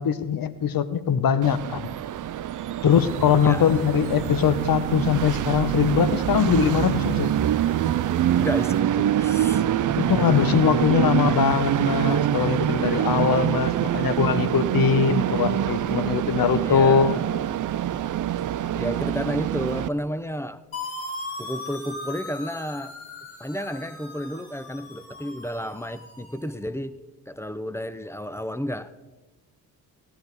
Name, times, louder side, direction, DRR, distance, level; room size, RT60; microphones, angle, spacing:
voice 1, 0.0-1.9 2.8-7.3 10.0-17.2, left 7 dB, 45° left, 14 dB, 0.9 m, -22 dB
Train, 1.4-19.9, right 11 dB, 40° right, 0.5 m, -25 dB
sound 1, 2.9-8.8, right 7 dB, 70° right, 1.0 m, -39 dB
voice 2, 3.4-3.8 8.4-9.6 9.9-10.2 16.6-17.3 18.8-20.6 21.4-22.9 23.4-27.0 27.3-28.9, equal, 5° left, 13 dB, 0.6 m, -31 dB
sound 2, 20.7-26.5, left 2 dB, 70° left, 2.2 m, -38 dB
16.0 x 10.0 x 4.0 m, 1.2 s
hypercardioid pair, 40°, 48 cm